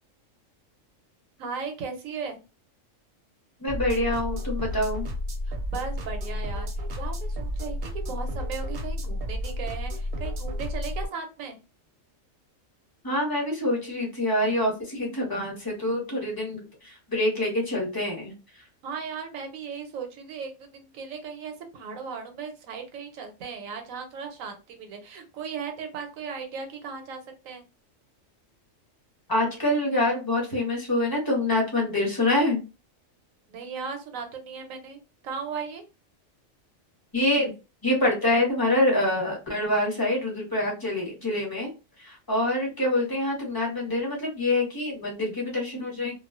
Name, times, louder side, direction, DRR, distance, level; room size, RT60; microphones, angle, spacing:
voice 1, 1.4-2.4 5.5-6.7 7.0-11.6 18.8-27.6 33.5-35.8, right 5 dB, 80° right, 5 dB, 1.1 m, -37 dB
voice 2, 3.6-5.1 13.0-18.3 29.3-32.6 37.1-37.5 37.8-41.7 42.0-46.1, left 1 dB, 20° left, -1 dB, 0.7 m, -26 dB
sound 1, 3.7-11.1, left 1 dB, 55° right, 0.8 m, -32 dB
2.3 x 2.2 x 2.4 m, 0.30 s
omnidirectional pair, 1.4 m